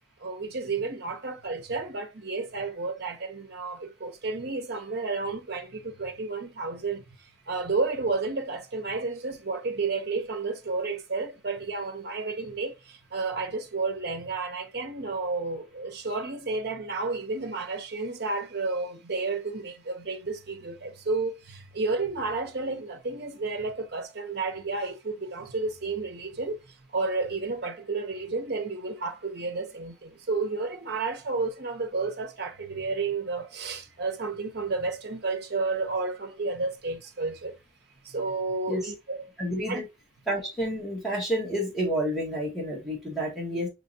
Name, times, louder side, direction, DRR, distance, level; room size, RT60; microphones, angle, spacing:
voice 1, 0.2-7.0 7.5-26.6 26.9-37.5 38.0-39.3 39.7-39.8, right 3 dB, 55° right, 0.7 m, -31 dB
voice 2, 39.4-39.8 40.3-43.7, equal, ahead, 1.2 m, -29 dB
5.5 x 3.0 x 2.6 m
head